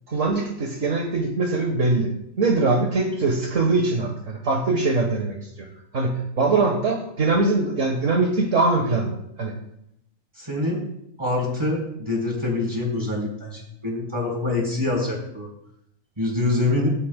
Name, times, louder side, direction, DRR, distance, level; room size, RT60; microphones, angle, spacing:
voice 1, 0.1-2.1 2.4-5.4 5.9-9.5, right 3 dB, 65° right, 2 dB, 1.6 m, -22 dB
voice 2, 10.4-10.8 11.2-15.5 16.2-16.9, left 2 dB, 20° right, -2 dB, 4.4 m, -25 dB
24.5 x 8.4 x 2.2 m, 0.77 s
omnidirectional pair, 1.4 m